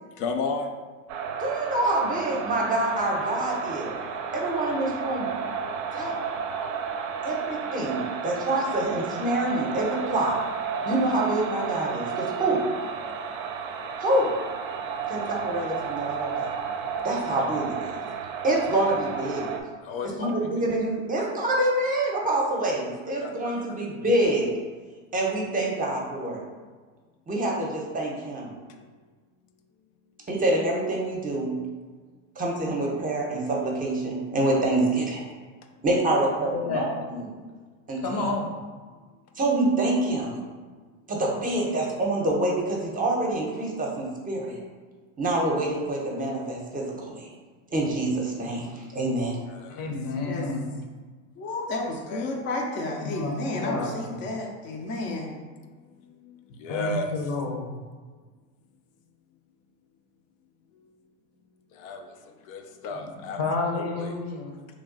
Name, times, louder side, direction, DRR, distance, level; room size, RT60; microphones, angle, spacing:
voice 1, 0.0-0.7 17.1-17.4 19.8-20.7 23.2-23.8 28.7-29.0 37.5-37.7 38.9-39.0 44.7-45.1 49.5-50.1 52.0-52.4 54.7-55.1 55.4-57.3 60.7-61.0 61.7-63.4 63.7-64.2, left 4 dB, 85° left, 4 dB, 0.5 m, -36 dB
sound 1, 1.1-19.6, right 6 dB, 60° right, 0.5 m, -32 dB
voice 2, 1.4-4.0 4.3-5.3 5.9-6.2 7.2-10.4 10.8-12.6 14.0-14.3 15.1-16.6 17.0-17.9 18.4-19.5 20.2-24.5 25.1-26.4 27.3-28.5 30.3-31.6 32.4-35.2 35.8-37.3 37.9-38.3 39.4-40.4 41.1-44.6 45.2-47.3 47.7-49.4, right 1 dB, 20° right, -1 dB, 0.7 m, -26 dB
voice 3, 36.5-36.9 38.0-38.5 49.7-50.7 53.0-54.1 56.7-57.7 63.4-64.7, left 3 dB, 60° left, 1 dB, 0.9 m, -30 dB
voice 4, 51.4-55.3, left 2 dB, 30° left, 0 dB, 0.5 m, -31 dB
3.1 x 2.2 x 3.8 m, 1.4 s
supercardioid pair, 105°, 38 cm